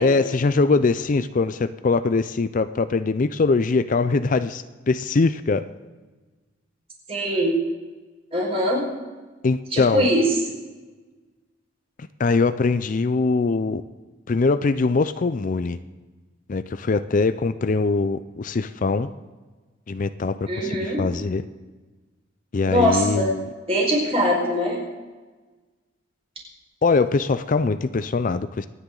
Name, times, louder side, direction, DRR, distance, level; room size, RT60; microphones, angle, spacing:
voice 1, 0.0-5.7 9.4-10.1 12.0-13.8 14.3-15.8 16.5-19.1 19.9-21.4 22.5-23.4 26.8-28.7, left 3 dB, 40° left, 12 dB, 0.4 m, -22 dB
voice 2, 7.1-7.5 8.3-8.8 9.7-10.2 20.5-21.0 22.6-23.3 23.7-24.8, equal, 30° right, -2 dB, 5.0 m, -22 dB
24.5 x 10.0 x 3.9 m, 1.3 s
head